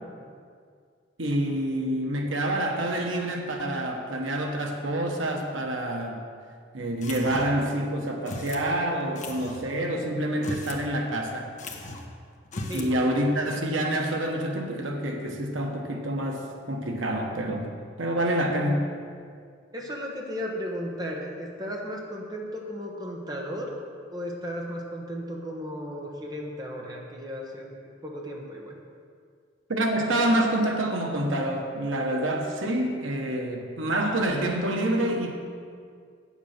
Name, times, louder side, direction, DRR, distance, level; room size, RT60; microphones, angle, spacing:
voice 1, 1.2-6.2 6.7-11.5 12.7-18.9 29.7-35.3, right 1 dB, 85° right, 2 dB, 1.2 m, -27 dB
sound 1, 7.0-7.7 8.2-8.7 9.1-9.6 10.3-10.8 11.1-11.2 11.6-12.1 12.4-12.9, left 2 dB, 40° left, 0.9 m, -37 dB
voice 2, 12.7-13.0 19.7-23.7 24.1-27.7 28.0-28.8, equal, 20° right, -1 dB, 1.1 m, -35 dB
8.7 x 7.2 x 6.6 m, 2.2 s
head